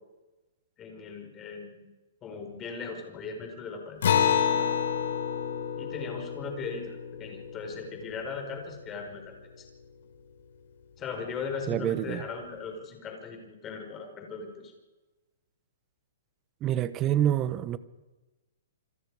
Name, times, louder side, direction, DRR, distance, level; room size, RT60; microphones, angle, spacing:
voice 1, 0.8-1.9 2.2-4.0 4.5-4.7 5.8-9.6 11.0-14.7, left 5 dB, 15° left, 4.9 m, -38 dB
Acoustic guitar, 4.0-8.9, left 8 dB, 60° left, 3.8 m, -29 dB
voice 2, 11.7-12.2 16.6-17.8, right 11 dB, 20° right, 1.0 m, -27 dB
28.0 x 26.0 x 4.9 m
hypercardioid pair, 165°, 0 cm